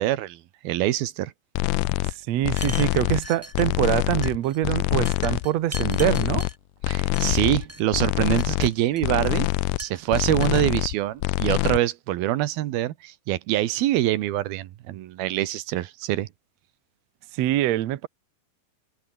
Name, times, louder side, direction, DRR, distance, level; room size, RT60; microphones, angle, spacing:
voice 1, 0.0-1.3 6.9-9.5 9.8-16.3, right 14 dB, 80° right, 3.0 m, -25 dB
sound 1, 1.6-2.1 2.4-3.3 3.5-4.4 4.6-5.5 5.7-6.5 6.8-7.7 7.9-8.7 9.0-9.8 10.1-10.9 11.2-11.8, left 20 dB, 90° left, 1.8 m, -25 dB
voice 2, 2.1-6.5 17.3-18.1, right 13 dB, 65° right, 1.8 m, -24 dB
sound 2, 2.5-4.0 4.2-4.6 5.0-6.6 7.1-7.8 8.2-9.3 9.8-10.7, right 1 dB, 5° right, 2.6 m, -40 dB
omnidirectional pair, 4.3 m